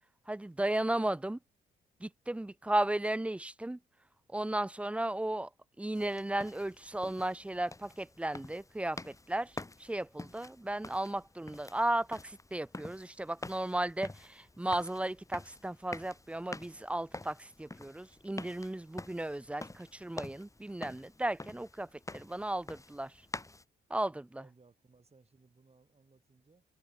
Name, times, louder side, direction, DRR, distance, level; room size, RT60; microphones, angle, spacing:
voice 1, 0.3-1.4 2.0-3.8 4.3-5.5 5.8-23.1 23.9-24.4, right 1 dB, 5° right, 0.4 m, -35 dB
sound 1, 5.9-23.6, left 2 dB, 15° left, 1.5 m, -48 dB
voice 2, 23.9-26.6, right 4 dB, 30° right, 4.0 m, -65 dB
supercardioid pair, 55°, 20 cm